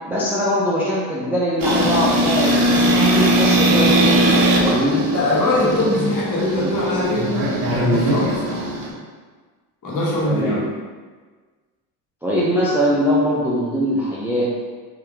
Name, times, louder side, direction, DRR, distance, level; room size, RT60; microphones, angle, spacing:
voice 1, 0.1-2.5 2.8-5.0 10.3-10.6 12.2-14.5, equal, 5° right, -7 dB, 0.5 m, -21 dB
sound 1, 1.6-8.9, right 1 dB, 45° right, 0.9 m, -19 dB
voice 2, 5.1-8.7 9.8-10.6, left 1 dB, 40° left, -6 dB, 1.4 m, -22 dB
3.7 x 2.7 x 3.4 m, 1.4 s
supercardioid pair, 95°, 47 cm